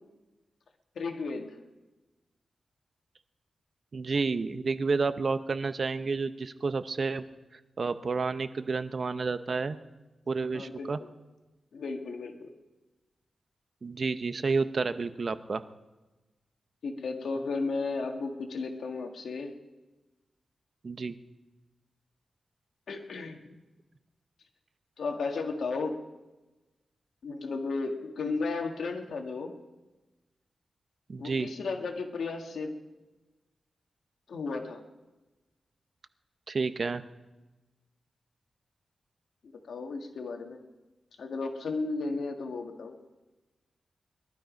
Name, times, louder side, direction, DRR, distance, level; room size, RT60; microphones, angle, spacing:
voice 1, 1.0-1.6 10.5-11.0 11.7-12.5 16.8-19.5 22.9-23.6 25.0-26.0 27.2-29.5 31.2-32.7 34.3-34.8 39.4-40.6 41.2-43.0, left 3 dB, 90° left, 4 dB, 1.7 m, -34 dB
voice 2, 3.9-7.2 7.8-9.8 10.3-11.0 13.8-15.6 20.8-21.2 31.1-31.5 36.5-37.0, right 4 dB, 50° right, 12 dB, 0.7 m, -30 dB
21.5 x 12.0 x 5.1 m, 1.1 s
wide cardioid pair, 105°, 0 cm